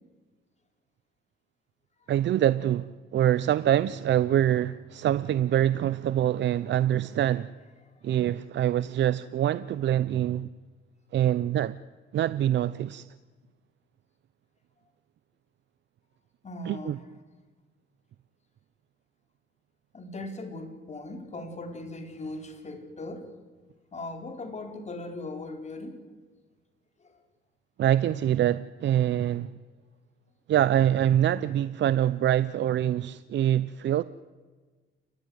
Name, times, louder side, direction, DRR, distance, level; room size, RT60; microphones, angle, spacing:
voice 1, 2.1-7.5 8.0-10.5 11.1-11.8 12.1-13.0 16.7-17.0 27.8-29.5 30.5-34.0, right 11 dB, 65° right, 0.7 m, -25 dB
voice 2, 16.4-17.1 19.9-23.3 23.9-26.0 27.0-27.2, left 2 dB, 35° left, 4.1 m, -39 dB
29.5 x 14.5 x 9.5 m
cardioid pair, 90°, 20 cm